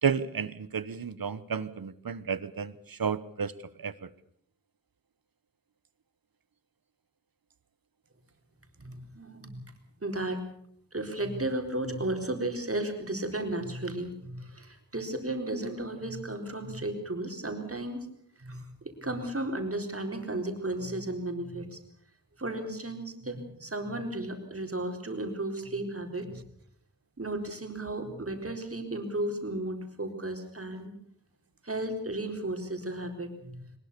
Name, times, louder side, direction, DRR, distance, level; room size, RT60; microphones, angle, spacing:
voice 1, 0.0-4.1, right 6 dB, 80° right, 16 dB, 1.1 m, -32 dB
voice 2, 8.8-9.6 10.0-10.4 10.9-18.1 18.4-21.8 22.4-26.4 27.2-30.9 31.6-33.6, right 1 dB, 40° right, 4 dB, 4.1 m, -34 dB
22.0 x 21.0 x 6.9 m, 0.68 s
wide cardioid pair, 75°, 35 cm